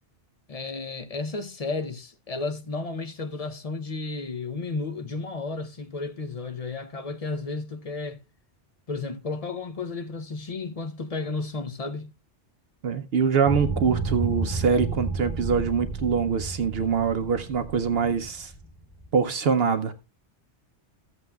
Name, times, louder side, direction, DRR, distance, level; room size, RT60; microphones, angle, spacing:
voice 1, 0.5-8.2 8.9-12.1, left 3 dB, 40° left, 0.7 m, -33 dB
voice 2, 12.8-18.5 19.1-19.9, right 6 dB, 65° right, 0.9 m, -24 dB
sound 1, 13.5-19.2, right 3 dB, 20° left, 2.4 m, -31 dB
14.5 x 8.1 x 2.3 m
omnidirectional pair, 1.2 m